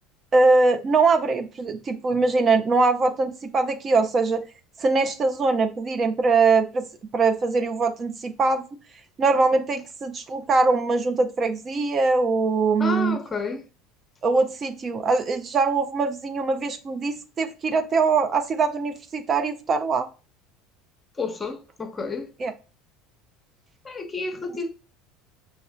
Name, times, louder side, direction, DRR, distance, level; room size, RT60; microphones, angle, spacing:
voice 1, 0.3-4.4 4.8-6.8 7.1-8.6 9.2-13.2 14.2-20.1 22.4-22.5, right 3 dB, 35° right, 0.5 m, -22 dB
voice 2, 12.8-13.6 21.2-22.3 23.8-24.7, left 3 dB, 20° left, 0.9 m, -30 dB
5.3 x 3.4 x 2.2 m
hypercardioid pair, 80°, 0 cm